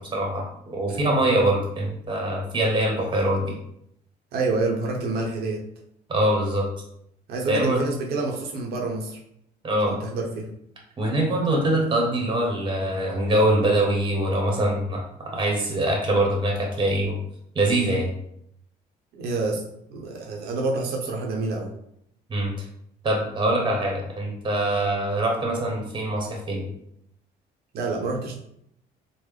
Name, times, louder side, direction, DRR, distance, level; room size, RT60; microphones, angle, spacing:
voice 1, 0.0-3.5 6.1-6.7 7.5-7.8 9.6-10.0 11.0-15.0 15.3-17.2 17.5-18.1 22.3-22.5 23.0-26.7, right 1 dB, 30° right, -1 dB, 1.1 m, -23 dB
voice 2, 4.3-5.6 7.3-9.2 9.8-10.5 19.1-19.6 19.9-21.7 27.7-28.3, right 3 dB, 70° right, 0 dB, 0.9 m, -28 dB
3.9 x 2.1 x 3.3 m, 0.74 s
cardioid pair, 110°, 17 cm